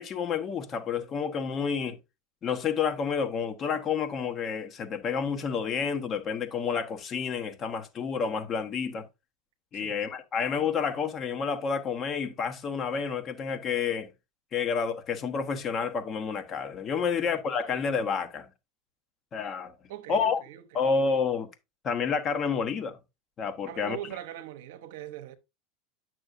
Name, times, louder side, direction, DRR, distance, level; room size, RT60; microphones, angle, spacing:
voice 1, 0.0-2.0 2.4-9.1 9.7-14.1 14.5-18.5 19.3-19.7 20.1-20.4 20.7-21.5 21.8-23.0 23.4-24.0, left 6 dB, 40° left, 1.1 m, -29 dB
voice 2, 19.9-21.0 23.7-25.4, right 12 dB, 70° right, 0.8 m, -42 dB
8.9 x 6.2 x 2.6 m
hypercardioid pair, 85°, 0 cm